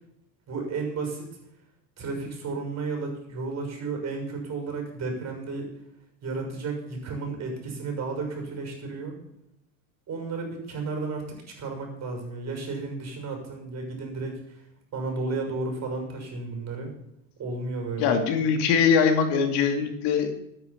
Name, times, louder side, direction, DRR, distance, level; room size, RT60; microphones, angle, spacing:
voice 1, 0.5-1.2 2.0-5.7 6.2-9.1 10.1-11.2 11.6-14.6 14.9-16.9 17.4-18.2, right 3 dB, 35° right, 3 dB, 6.5 m, -33 dB
voice 2, 18.0-20.5, left 6 dB, 55° left, 6 dB, 2.5 m, -22 dB
13.5 x 10.0 x 7.3 m, 0.80 s
supercardioid pair, 110°, 48 cm